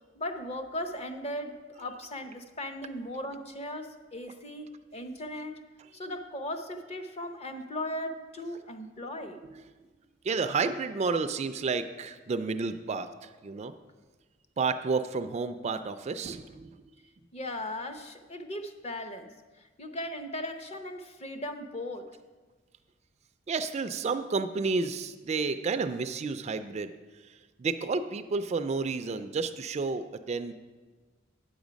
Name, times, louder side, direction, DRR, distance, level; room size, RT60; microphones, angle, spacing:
voice 1, 0.2-5.6 5.9-9.4 17.3-22.1, left 1 dB, 35° left, 7 dB, 0.7 m, -38 dB
voice 2, 10.2-13.7 14.6-16.8 23.5-26.9 27.6-30.5, right 4 dB, 35° right, 10 dB, 0.3 m, -31 dB
8.9 x 7.1 x 5.1 m, 1.3 s
head